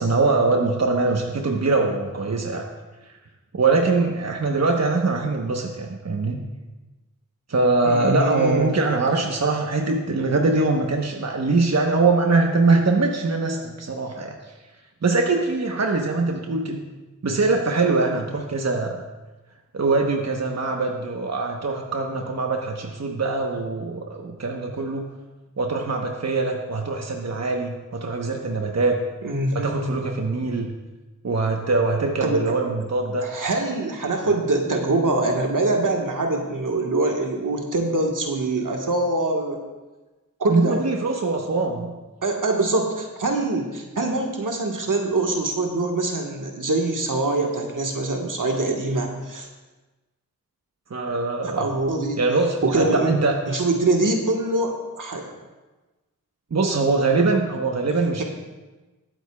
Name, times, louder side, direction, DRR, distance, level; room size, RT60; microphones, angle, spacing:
voice 1, 0.0-2.7 3.0-3.2 3.5-6.4 7.5-14.5 15.0-16.8 17.2-19.0 19.7-25.1 25.6-29.0 29.5-30.7 31.2-33.3 34.2-34.4 40.5-41.9 50.9-51.7 52.2-53.4 56.5-58.2, right 3 dB, 50° right, 2 dB, 1.0 m, -22 dB
voice 2, 7.8-8.7 29.2-29.9 32.2-32.5 33.2-39.6 40.4-40.8 42.2-49.5 51.6-52.2 52.6-53.1 53.5-55.3 58.2-58.3, right 2 dB, 70° right, 1 dB, 1.4 m, -24 dB
20.5 x 8.0 x 2.3 m, 1.2 s
cardioid pair, 40°, 33 cm